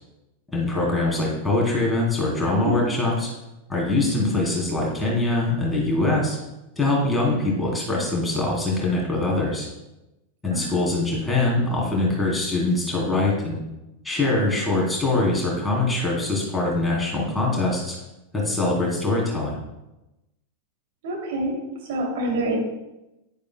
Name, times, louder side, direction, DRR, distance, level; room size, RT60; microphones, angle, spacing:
voice 1, 0.5-3.3 3.7-6.4 6.7-9.7 10.4-13.6 14.0-17.9 18.4-19.5, left 2 dB, 10° left, -4 dB, 3.3 m, -23 dB
voice 2, 2.5-2.8 10.5-10.7 21.0-21.6 21.9-22.6, right 1 dB, 50° right, -1 dB, 2.6 m, -26 dB
11.0 x 10.5 x 2.2 m, 0.96 s
figure-of-eight pair, 90°, 0 cm